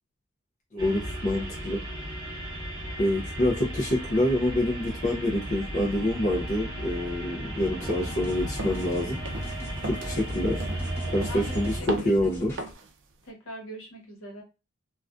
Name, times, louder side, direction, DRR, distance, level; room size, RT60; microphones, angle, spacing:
voice 1, 0.7-1.8 3.0-9.2 9.8-10.7 11.1-12.5, left 1 dB, 35° left, -2 dB, 0.5 m, -26 dB
sound 1, 0.8-11.8, right 1 dB, 20° right, 0.8 m, -35 dB
sound 2, 7.7-12.7, equal, 10° left, 0.9 m, -42 dB
sound 3, 8.6-8.9 9.3-9.6 9.8-10.2 10.6-10.9 11.2-11.6 11.9-12.2 12.6-12.9, right 2 dB, 60° right, 0.4 m, -35 dB
voice 2, 11.3-12.5 13.2-14.4, equal, 65° left, 0 dB, 1.0 m, -42 dB
2.4 x 2.3 x 2.3 m, 0.29 s
head